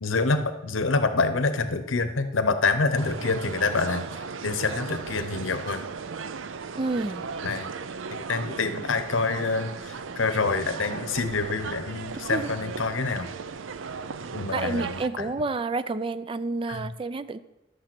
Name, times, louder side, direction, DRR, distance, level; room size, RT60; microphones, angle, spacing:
voice 1, 0.0-5.8 7.4-7.7 8.3-13.3 14.3-15.3 16.7-16.9, left 3 dB, 90° left, 10 dB, 0.9 m, -27 dB
sound 1, 3.0-15.1, right 5 dB, 85° right, 0.5 m, -36 dB
voice 2, 6.8-7.3 12.3-12.5 14.5-17.4, right 3 dB, 25° right, 14 dB, 0.3 m, -29 dB
11.5 x 6.7 x 6.0 m, 0.99 s
head